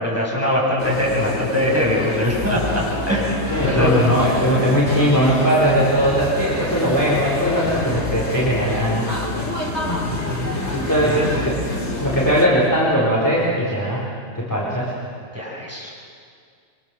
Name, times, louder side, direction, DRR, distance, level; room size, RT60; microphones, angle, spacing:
voice 1, 0.0-3.3 3.6-3.9 9.8-10.5 11.0-11.3 15.3-15.9, left 1 dB, 10° right, -5 dB, 8.0 m, -22 dB
sound 1, 0.8-12.4, left 2 dB, 50° left, 3.8 m, -27 dB
voice 2, 3.5-9.1 10.7-11.2 11.5-11.6 12.0-14.1 14.3-14.9, equal, 10° left, -6 dB, 4.5 m, -19 dB
27.0 x 25.0 x 7.7 m, 2.2 s
omnidirectional pair, 1.5 m